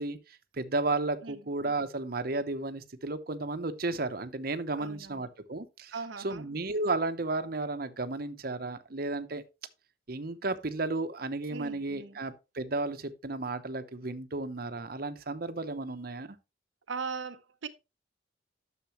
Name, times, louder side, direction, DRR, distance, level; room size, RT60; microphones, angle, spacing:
voice 1, 0.0-5.9 6.2-9.4 10.1-16.4, right 2 dB, 50° right, 0.9 m, -33 dB
voice 2, 4.7-5.3 5.9-6.5 11.5-12.2 16.9-17.7, right 5 dB, 85° right, 0.7 m, -39 dB
10.5 x 6.8 x 3.1 m
head